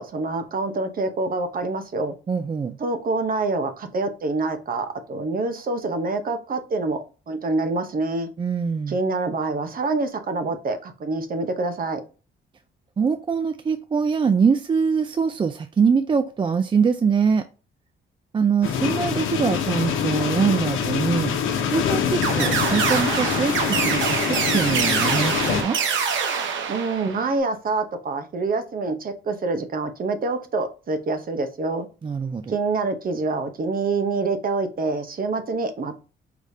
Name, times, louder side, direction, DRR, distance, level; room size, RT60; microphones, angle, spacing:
voice 1, 0.0-2.1 2.8-7.0 7.3-8.3 8.9-12.0 26.7-31.9 32.5-35.9, right 3 dB, 45° right, 1.0 m, -26 dB
voice 2, 2.3-2.8 8.4-9.0 13.0-17.5 18.3-21.3 21.7-25.8 32.0-32.6, right 6 dB, 25° right, 0.4 m, -23 dB
sound 1, 18.6-25.6, left 7 dB, 85° left, 0.9 m, -25 dB
sound 2, 22.2-27.4, right 6 dB, 70° right, 0.9 m, -25 dB
4.9 x 3.3 x 2.7 m
cardioid pair, 90°, 20 cm